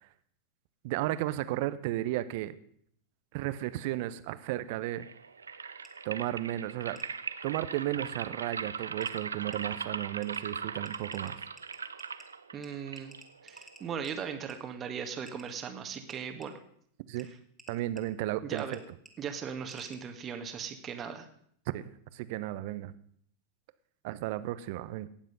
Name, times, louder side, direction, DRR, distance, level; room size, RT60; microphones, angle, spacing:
voice 1, 0.8-2.5 3.3-5.1 6.0-7.0 7.4-11.4 17.1-17.3 17.7-18.8 21.7-22.9 24.0-25.1, right 15 dB, 55° right, 14 dB, 0.9 m, -34 dB
sound 1, 4.9-13.9, right 5 dB, 85° right, 0.6 m, -40 dB
sound 2, 5.8-5.9 7.0-7.1 8.4-8.5 9.0-9.1 9.5-9.6 10.2-10.4 10.9-12.3 12.6-12.7 13.0-14.2 14.5-14.6 15.3-15.5 16.1-16.5 17.2-17.3 17.6-18.0 18.6-18.8 19.1-19.2 19.7-20.0, right 2 dB, 5° right, 2.3 m, -52 dB
voice 2, 12.5-13.1 13.4-16.6 18.4-18.8 19.2-21.3, right 7 dB, 30° right, 6 dB, 1.7 m, -38 dB
18.0 x 7.4 x 5.4 m, 0.65 s
figure-of-eight pair, 95°, 0 cm